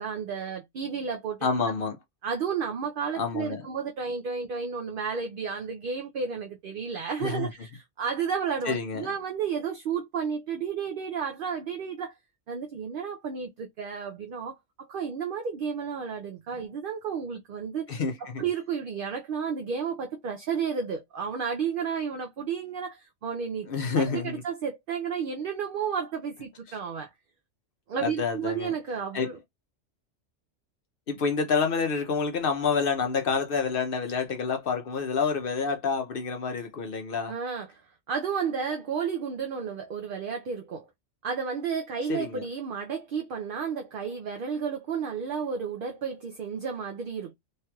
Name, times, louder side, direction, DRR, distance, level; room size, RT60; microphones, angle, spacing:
voice 1, 0.0-1.4 2.2-12.1 12.5-17.9 18.4-23.7 24.0-27.1 27.9-29.4 37.3-40.9 41.2-47.3, right 6 dB, 60° right, 0.6 m, -32 dB
voice 2, 1.4-2.0 3.1-3.6 7.2-7.5 8.6-9.1 17.9-18.4 23.7-24.4 28.0-28.7 29.1-29.3 31.1-37.3 42.1-42.5, left 5 dB, 55° left, 0.7 m, -28 dB
3.2 x 2.9 x 2.3 m
omnidirectional pair, 1.3 m